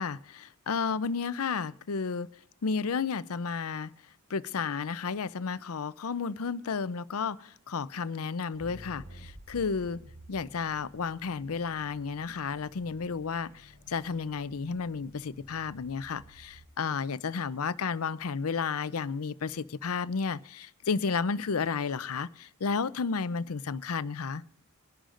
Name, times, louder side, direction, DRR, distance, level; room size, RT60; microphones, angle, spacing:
voice 1, 0.0-2.3 2.6-3.9 4.3-10.0 10.3-24.4, left 5 dB, 85° left, 0.6 m, -32 dB
sound 1, 8.6-16.7, equal, 70° right, 5.3 m, -52 dB
23.5 x 11.5 x 2.6 m
head